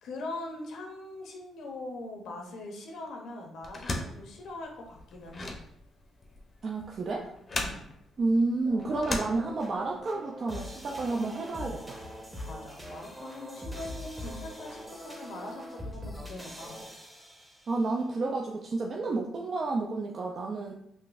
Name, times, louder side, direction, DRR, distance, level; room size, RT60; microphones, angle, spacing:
voice 1, 0.0-5.5 7.5-7.8 12.4-16.8, left 2 dB, 75° left, 1 dB, 0.6 m, -42 dB
sound 1, 3.6-10.0, left 2 dB, 35° left, 0.5 m, -38 dB
voice 2, 6.6-7.3 8.2-12.0 17.7-20.7, right 3 dB, 50° right, 0 dB, 0.3 m, -30 dB
sound 2, 8.6-17.9, equal, 10° right, 0.8 m, -43 dB
3.7 x 2.6 x 2.4 m, 0.76 s
cardioid pair, 90°, 0 cm